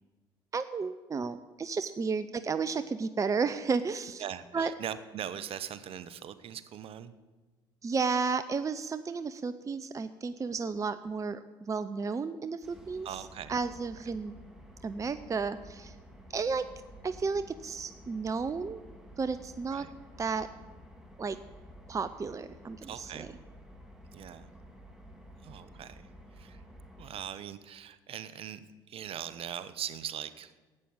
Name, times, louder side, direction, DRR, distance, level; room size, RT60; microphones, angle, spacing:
voice 1, 0.5-4.2 4.5-4.7 7.8-13.1 13.5-14.3 14.8-15.9 16.3-16.7 17.0-18.8 19.2-19.8 20.2-20.5 21.2-21.4 21.9-23.3, right 5 dB, 25° right, 13 dB, 0.6 m, -32 dB
voice 2, 4.2-7.1 13.0-13.6 19.7-19.9 22.8-23.4 24.1-24.5 25.4-26.6 27.0-30.5, right 9 dB, 50° right, 14 dB, 0.9 m, -41 dB
sound 1, 12.6-27.2, equal, 5° right, 2.3 m, -52 dB
11.0 x 8.6 x 9.3 m, 1.2 s
hypercardioid pair, 65°, 12 cm